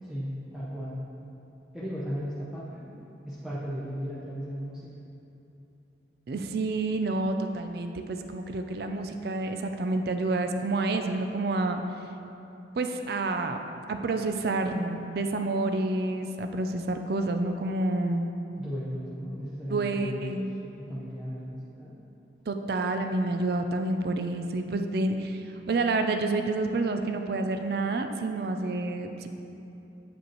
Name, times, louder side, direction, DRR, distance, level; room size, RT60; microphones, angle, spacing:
voice 1, 0.0-1.0 1.7-3.0 3.3-4.9 18.6-20.5 20.8-22.0, equal, 5° right, -9 dB, 0.5 m, -36 dB
voice 2, 6.3-11.8 12.8-13.6 13.9-18.3 19.7-20.4 22.5-29.3, right 2 dB, 55° right, 6 dB, 0.4 m, -29 dB
8.2 x 5.0 x 3.0 m, 2.8 s
head